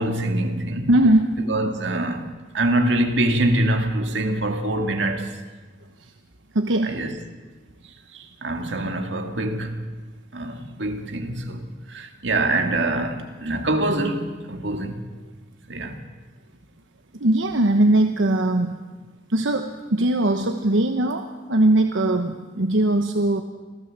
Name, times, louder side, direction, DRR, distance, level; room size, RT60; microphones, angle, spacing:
voice 1, 0.0-0.9 1.5-2.3 2.5-5.3 6.8-7.2 8.1-9.8 10.3-11.6 11.9-15.0 15.7-16.0, right 1 dB, 70° right, 2.2 m, -24 dB
voice 2, 0.9-1.4 6.0-6.1 6.5-7.0 17.2-18.8 19.3-23.4, right 1 dB, 90° right, 1.1 m, -20 dB
26.0 x 16.0 x 7.5 m
head